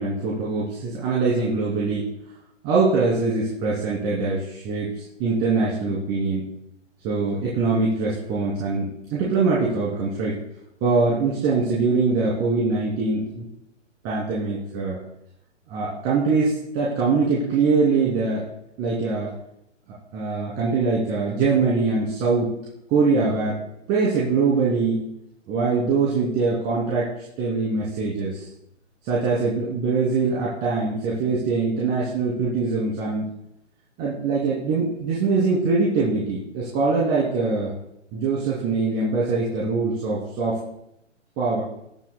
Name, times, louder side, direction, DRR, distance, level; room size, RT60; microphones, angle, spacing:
voice 1, 0.0-2.1 2.6-6.5 7.0-10.4 10.8-13.5 14.0-15.0 15.7-18.4 18.8-19.3 20.1-22.6 22.9-23.6 23.9-25.0 25.5-28.5 29.0-33.3 34.0-37.7 38.1-40.6 41.4-41.6, right 4 dB, 25° right, -7 dB, 2.8 m, -23 dB
21.5 x 8.7 x 2.2 m, 0.79 s
hypercardioid pair, 140°, 37 cm